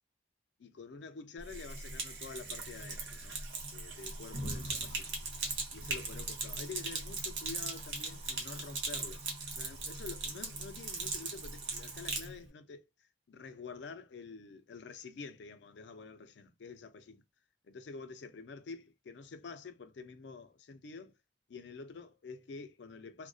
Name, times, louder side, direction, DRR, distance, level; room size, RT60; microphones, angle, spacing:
voice 1, 0.6-3.4 3.7-5.2 5.7-9.2 9.5-12.9 13.3-17.2 17.6-21.1 21.5-23.3, left 4 dB, 70° left, 0.4 m, -48 dB
Sink (filling or washing), 1.4-12.3, right 3 dB, 90° right, 0.8 m, -39 dB
2.5 x 2.1 x 2.3 m
head